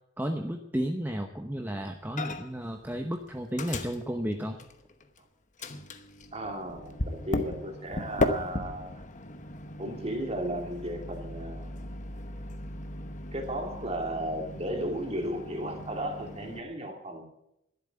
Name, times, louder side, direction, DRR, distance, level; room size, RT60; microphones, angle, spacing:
voice 1, 0.2-4.6, equal, 10° right, 4 dB, 0.9 m, -33 dB
Microwave oven, 2.2-2.7 2.9-5.2 5.6-16.6, left 2 dB, 40° left, 1.0 m, -36 dB
voice 2, 6.3-9.0 9.8-11.8 13.3-17.2, right 1 dB, 30° right, 3 dB, 2.6 m, -35 dB
12.5 x 11.0 x 8.7 m, 0.83 s
head